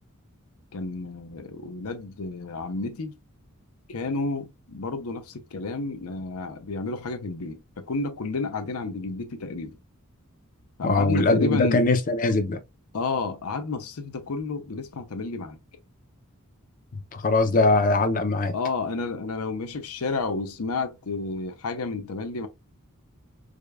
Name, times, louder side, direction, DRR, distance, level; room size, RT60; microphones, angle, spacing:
voice 1, 0.7-3.2 3.9-9.8 10.8-11.9 12.9-15.6 18.5-22.5, left 3 dB, 85° left, 0.7 m, -31 dB
voice 2, 10.8-12.6 17.1-18.5, left 2 dB, 40° left, 0.5 m, -21 dB
4.9 x 2.2 x 2.3 m
head